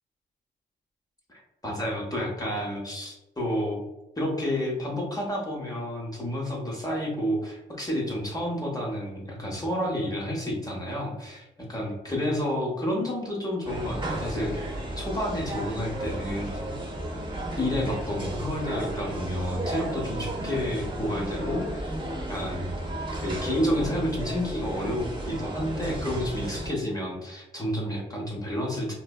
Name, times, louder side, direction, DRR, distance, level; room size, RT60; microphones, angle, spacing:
voice 1, 1.3-3.8 4.2-16.5 17.6-21.9 22.3-22.7 23.2-28.9, equal, 15° left, -2 dB, 0.8 m, -30 dB
sound 1, 13.6-26.7, right 1 dB, 25° right, 0.7 m, -33 dB
2.6 x 2.1 x 2.3 m, 1.0 s
supercardioid pair, 50°, 21 cm